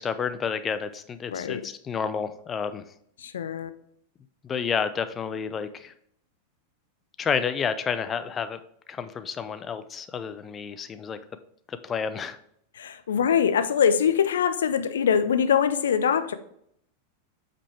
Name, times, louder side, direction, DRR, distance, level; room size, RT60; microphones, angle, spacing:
voice 1, 0.0-2.8 4.4-5.9 7.2-8.6 8.9-11.2 11.7-12.4, left 6 dB, 20° left, 11 dB, 0.6 m, -30 dB
voice 2, 1.3-1.7 3.2-3.7 12.8-16.3, left 7 dB, 65° left, 11 dB, 0.6 m, -23 dB
8.4 x 5.2 x 3.3 m, 0.71 s
figure-of-eight pair, 90°, 0 cm